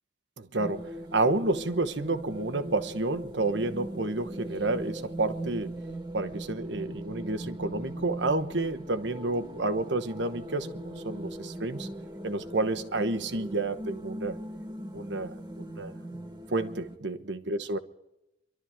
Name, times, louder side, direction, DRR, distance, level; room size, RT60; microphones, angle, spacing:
voice 1, 0.4-5.8 6.1-11.9 12.2-14.4 14.9-16.0 16.5-17.8, right 2 dB, 75° right, 1.1 m, -30 dB
sound 1, 0.6-17.0, right 1 dB, 25° right, 1.6 m, -40 dB
26.5 x 12.5 x 3.6 m
head